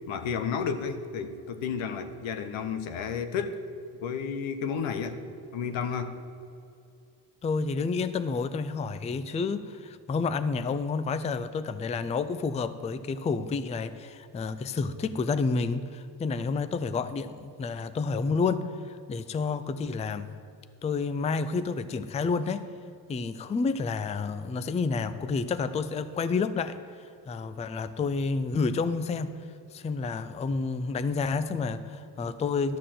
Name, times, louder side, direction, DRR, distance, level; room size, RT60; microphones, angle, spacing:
voice 1, 0.1-3.6 4.0-5.2 5.5-6.2, left 6 dB, 90° left, 8 dB, 0.9 m, -32 dB
voice 2, 7.4-20.3 20.8-22.7 23.1-29.3 29.7-32.8, left 4 dB, 15° left, 12 dB, 0.3 m, -30 dB
12.5 x 4.5 x 7.5 m, 2.5 s
cardioid pair, 100°, 45 cm